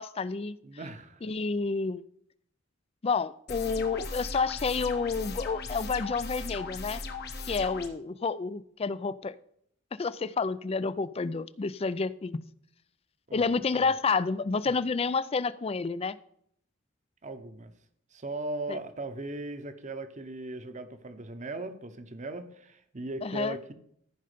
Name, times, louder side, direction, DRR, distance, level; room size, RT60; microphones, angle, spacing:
voice 1, 0.0-0.6 1.2-2.0 3.0-7.0 7.5-9.3 10.0-12.4 13.3-16.2 18.7-18.8 23.2-23.6, left 4 dB, 30° left, 0.4 m, -29 dB
voice 2, 0.6-1.2 13.3-13.9 14.6-14.8 17.2-17.7 18.1-23.7, right 2 dB, 40° right, 0.9 m, -38 dB
sound 1, 3.5-7.9, left 3 dB, 55° left, 1.2 m, -37 dB
14.0 x 5.5 x 5.1 m
head